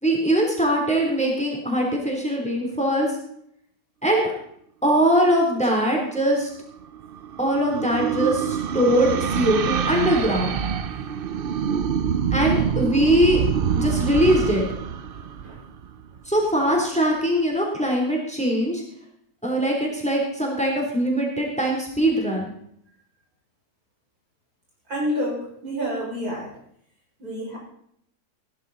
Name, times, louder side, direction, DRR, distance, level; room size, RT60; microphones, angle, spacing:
voice 1, 0.0-3.1 4.0-4.3 4.8-6.5 7.4-10.5 12.3-13.4 13.8-14.7 16.2-18.8 19.4-22.5, equal, 5° left, -1 dB, 3.4 m, -21 dB
sound 1, 6.6-16.2, right 7 dB, 55° right, 0.6 m, -26 dB
voice 2, 24.9-26.6 27.2-27.6, equal, 75° right, -4 dB, 6.6 m, -28 dB
17.5 x 11.0 x 4.1 m, 0.69 s
omnidirectional pair, 1.6 m